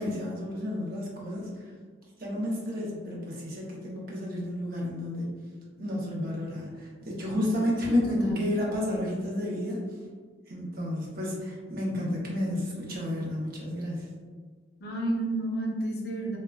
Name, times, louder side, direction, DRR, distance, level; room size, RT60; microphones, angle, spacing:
voice 1, 0.0-1.5 2.2-5.3 5.8-9.8 10.5-14.1, left 1 dB, 55° right, -3 dB, 0.7 m, -31 dB
voice 2, 7.8-8.4 14.8-16.4, equal, 60° left, -2 dB, 0.6 m, -29 dB
3.5 x 2.2 x 2.2 m, 1.5 s
head